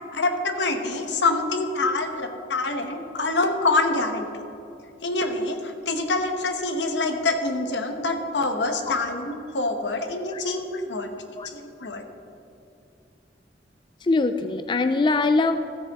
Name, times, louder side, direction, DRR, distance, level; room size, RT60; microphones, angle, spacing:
voice 1, 0.1-4.5 5.0-11.1 11.4-12.0, left 2 dB, 85° left, 6 dB, 1.0 m, -26 dB
voice 2, 14.0-15.6, left 3 dB, 25° left, 9 dB, 0.3 m, -22 dB
13.5 x 9.1 x 3.5 m, 2.7 s
head